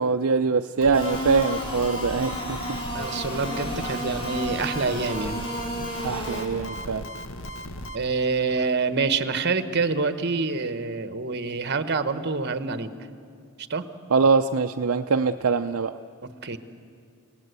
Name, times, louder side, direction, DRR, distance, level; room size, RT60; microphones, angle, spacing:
voice 1, 0.0-2.6 6.0-7.0 14.1-15.9, right 4 dB, 65° right, 6 dB, 0.5 m, -23 dB
sound 1, 0.8-8.0, equal, 60° left, 1.2 m, -37 dB
sound 2, 0.9-6.4, equal, 25° left, 4.0 m, -32 dB
voice 2, 2.9-5.4 7.9-12.9 13.6-13.9 16.2-16.6, right 4 dB, 50° right, 11 dB, 1.1 m, -26 dB
29.5 x 18.0 x 8.1 m, 2.3 s
head